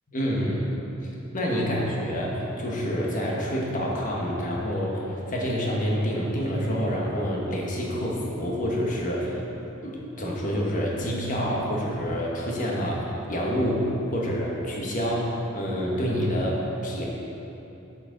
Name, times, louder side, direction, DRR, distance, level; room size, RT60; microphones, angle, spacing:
voice 1, 0.1-0.7 1.0-17.1, equal, 40° left, -3 dB, 1.2 m, -27 dB
8.2 x 6.0 x 3.9 m, 3.0 s
head